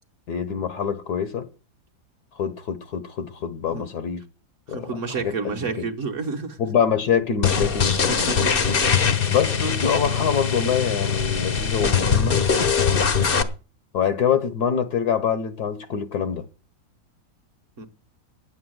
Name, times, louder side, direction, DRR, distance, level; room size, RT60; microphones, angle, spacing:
voice 1, 0.3-1.5 2.3-4.2 4.7-5.6 6.6-8.3 9.3-12.4 13.9-16.5, left 7 dB, 60° left, 1.3 m, -25 dB
voice 2, 4.7-6.6 8.3-8.4 17.8-17.9, right 4 dB, 45° right, 1.3 m, -30 dB
sound 1, 7.4-13.4, left 6 dB, 40° left, 0.8 m, -22 dB
9.5 x 8.8 x 7.7 m
omnidirectional pair, 2.1 m